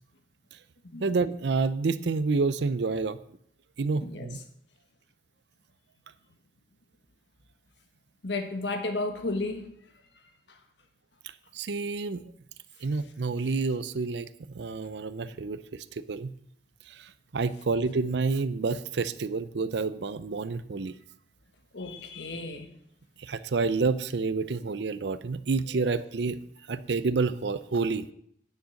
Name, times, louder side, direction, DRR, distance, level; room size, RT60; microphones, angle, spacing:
voice 1, 1.0-3.2 3.8-4.4 11.5-12.2 12.8-16.3 16.9-20.9 23.2-26.4 26.7-28.1, right 4 dB, 75° right, 0.5 m, -29 dB
voice 2, 4.0-4.3 8.2-9.7 21.7-22.7 25.7-25.9, left 2 dB, 80° left, 1.4 m, -33 dB
9.9 x 6.5 x 6.4 m
head